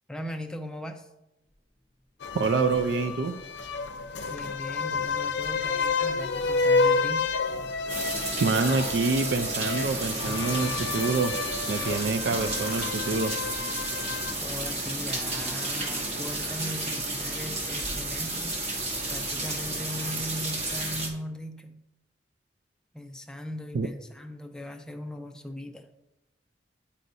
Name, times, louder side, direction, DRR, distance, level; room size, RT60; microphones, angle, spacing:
voice 1, 0.1-1.1 4.3-7.3 14.4-18.6 19.1-21.8 22.9-25.9, left 1 dB, 5° left, 4 dB, 0.4 m, -39 dB
sound 1, 2.2-14.3, left 4 dB, 75° left, 0.6 m, -30 dB
voice 2, 2.3-3.3 8.4-11.3 11.7-13.3 23.7-23.9, right 4 dB, 75° right, 8 dB, 0.4 m, -26 dB
sound 2, 3.5-19.3, left 2 dB, 30° left, 0.9 m, -45 dB
sound 3, 7.9-21.1, right 2 dB, 35° right, 1.1 m, -32 dB
9.3 x 4.1 x 2.7 m, 0.94 s
head